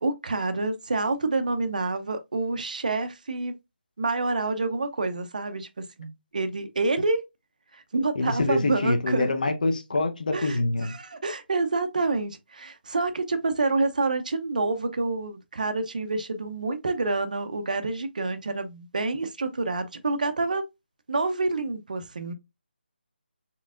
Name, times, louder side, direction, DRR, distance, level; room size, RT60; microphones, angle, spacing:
voice 1, 0.0-3.5 4.0-7.2 7.7-9.3 10.3-20.6 21.1-22.3, right 3 dB, 45° right, 0.6 m, -28 dB
voice 2, 8.2-10.9, left 2 dB, 50° left, 0.7 m, -25 dB
4.4 x 3.5 x 2.4 m
hypercardioid pair, 175°, 6 cm